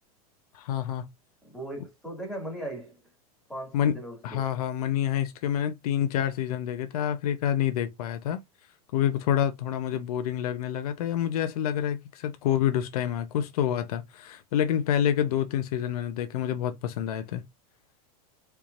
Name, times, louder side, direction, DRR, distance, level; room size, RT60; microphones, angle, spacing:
voice 1, 0.5-1.1 3.7-4.0 4.2-8.4 8.9-17.4, left 10 dB, 75° left, 0.8 m, -27 dB
voice 2, 1.4-3.0 3.5-4.5, right 1 dB, ahead, 2.2 m, -38 dB
4.5 x 3.5 x 2.5 m
supercardioid pair, 150°, 20 cm